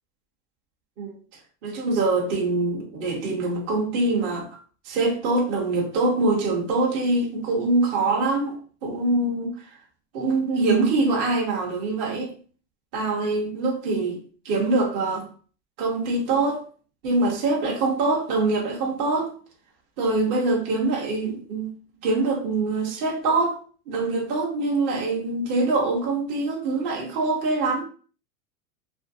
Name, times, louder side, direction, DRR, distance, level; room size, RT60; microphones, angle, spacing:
voice 1, 1.6-4.6 4.9-9.5 10.1-12.3 12.9-14.2 14.4-15.3 15.8-16.6 17.0-19.3 20.0-21.7 22.0-23.6 23.9-27.8, right 3 dB, 25° right, 0.3 m, -24 dB
2.5 x 2.4 x 2.5 m
supercardioid pair, 145°, 46 cm